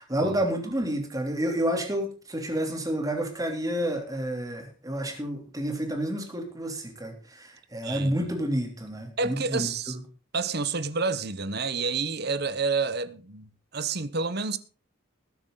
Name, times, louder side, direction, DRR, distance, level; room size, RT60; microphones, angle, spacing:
voice 1, 0.0-10.0, right 1 dB, 20° right, 3.1 m, -30 dB
voice 2, 9.2-10.0 10.3-14.6, right 4 dB, 55° right, 1.1 m, -29 dB
20.0 x 9.6 x 3.9 m
head